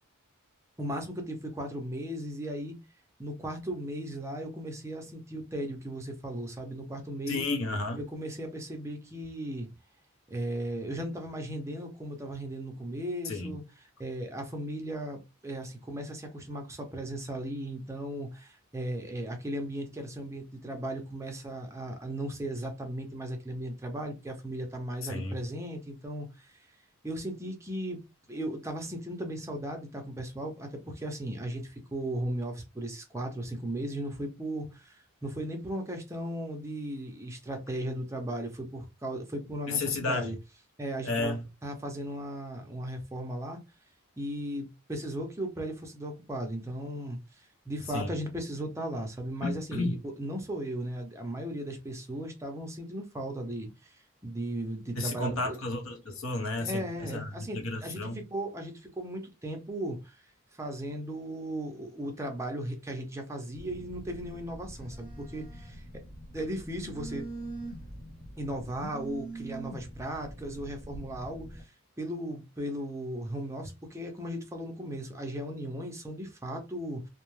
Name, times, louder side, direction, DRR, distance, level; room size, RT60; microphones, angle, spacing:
voice 1, 0.8-2.7 3.2-7.4 8.1-9.7 10.3-13.6 14.0-26.7 27.0-40.4 40.8-41.4 41.6-43.6 44.2-55.6 56.6-58.0 58.3-60.3 60.6-66.0 66.3-67.3 68.4-77.1, right 1 dB, 15° right, 0.5 m, -36 dB
voice 2, 7.3-8.0 13.2-13.5 25.0-25.4 39.7-40.3 41.0-41.4 47.9-48.1 49.4-50.0 55.0-58.2, left 2 dB, 65° left, 0.7 m, -32 dB
Telephone, 63.5-71.6, right 1 dB, 45° left, 1.1 m, -43 dB
2.5 x 2.2 x 3.1 m
head